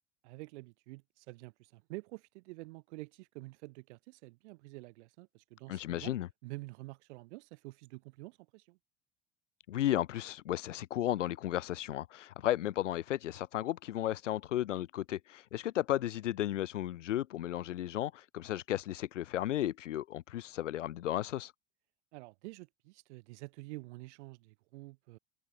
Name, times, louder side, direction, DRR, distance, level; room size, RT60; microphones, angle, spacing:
voice 1, 0.2-6.1 6.4-8.8 22.1-25.2, right 22 dB, 70° right, 5.3 m, -48 dB
voice 2, 5.7-6.3 9.7-21.5, left 13 dB, 80° left, 0.9 m, -34 dB
hypercardioid pair, 75°, 36 cm